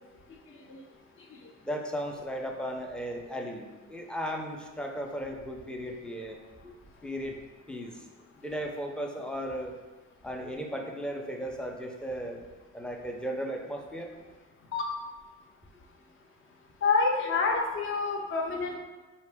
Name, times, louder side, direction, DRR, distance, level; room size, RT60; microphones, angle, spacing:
voice 1, 1.6-6.4 6.6-6.7 7.0-7.4 7.7-8.0 8.4-9.7 10.2-12.4 12.7-14.1, equal, 5° left, 1 dB, 0.5 m, -36 dB
voice 2, 16.8-18.7, left 4 dB, 45° left, 1 dB, 0.6 m, -27 dB
4.1 x 2.9 x 3.4 m, 1.3 s
cardioid pair, 90°, 30 cm